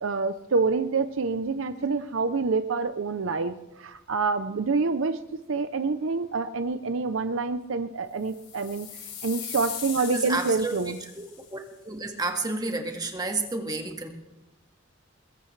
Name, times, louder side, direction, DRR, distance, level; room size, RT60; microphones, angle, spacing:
voice 1, 0.0-5.2 5.5-8.9 9.2-11.0, right 4 dB, 75° right, 10 dB, 0.6 m, -27 dB
sound 1, 8.3-11.5, left 7 dB, 60° left, 5.1 m, -39 dB
voice 2, 10.1-10.8 11.2-11.3 11.5-14.1, right 3 dB, 20° right, 3 dB, 1.8 m, -30 dB
21.5 x 17.0 x 3.3 m, 0.98 s
head